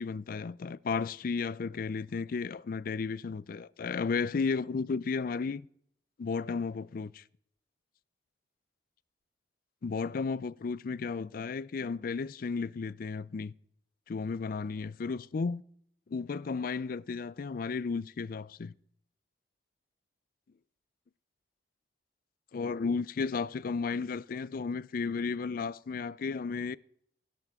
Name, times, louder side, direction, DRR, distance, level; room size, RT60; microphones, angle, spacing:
voice 1, 0.0-5.6 6.2-7.2 9.8-13.5 14.1-15.6 16.1-18.7 22.5-26.8, left 4 dB, 50° left, 0.4 m, -33 dB
17.5 x 11.0 x 3.6 m
head